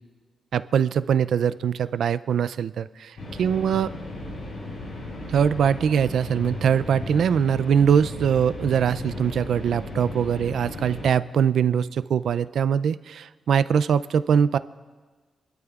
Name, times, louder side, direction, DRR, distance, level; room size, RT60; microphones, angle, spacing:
voice 1, 0.5-3.9 5.3-14.6, right 7 dB, 65° right, 15 dB, 0.3 m, -22 dB
sound 1, 3.2-11.1, left 2 dB, 70° left, 4.3 m, -36 dB
28.5 x 12.5 x 2.4 m, 1.4 s
wide cardioid pair, 155°, 0 cm